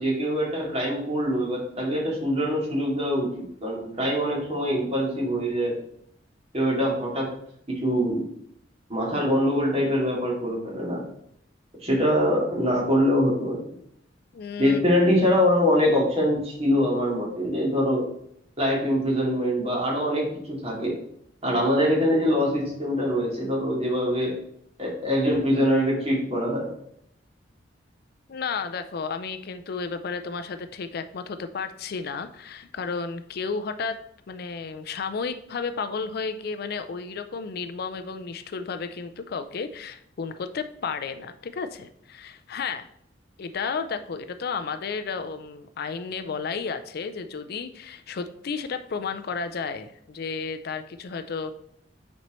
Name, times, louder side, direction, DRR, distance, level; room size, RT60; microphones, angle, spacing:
voice 1, 0.0-5.8 6.5-7.3 7.7-8.3 8.9-11.0 11.8-13.6 14.6-18.1 18.6-20.9 21.4-24.4 24.8-26.7, equal, 35° right, -4 dB, 2.4 m, -24 dB
voice 2, 14.3-15.0 28.3-34.0 34.3-42.9 43.4-51.5, left 5 dB, 55° left, 10 dB, 0.4 m, -32 dB
9.0 x 4.3 x 3.1 m, 0.72 s
head